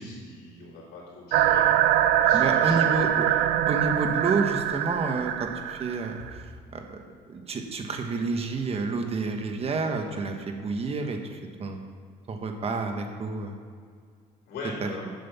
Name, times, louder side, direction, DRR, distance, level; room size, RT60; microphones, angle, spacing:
voice 1, 0.0-3.4 14.5-15.0, left 3 dB, 75° left, -8 dB, 3.0 m, -41 dB
sound 1, 1.3-6.3, right 11 dB, 85° right, 0.5 m, -23 dB
voice 2, 2.3-3.3 3.7-7.0 7.3-11.8 12.3-13.5 14.8-14.9, right 4 dB, 35° right, 4 dB, 1.3 m, -29 dB
7.7 x 7.6 x 7.1 m, 2.1 s
cardioid pair, 110°, 17 cm